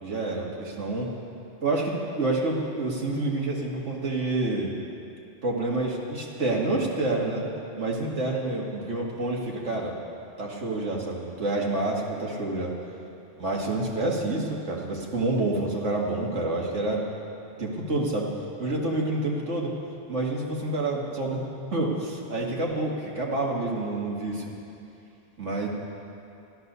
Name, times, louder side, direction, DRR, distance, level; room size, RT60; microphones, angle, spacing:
voice 1, 0.0-1.1 1.6-4.7 5.4-7.4 7.8-9.9 10.4-12.7 13.4-17.1 17.6-18.3 18.6-19.8 20.1-21.4 21.7-24.4 25.4-25.7, right 2 dB, 85° right, -2 dB, 2.4 m, -28 dB
14.0 x 12.5 x 6.8 m, 2.8 s
omnidirectional pair, 1.2 m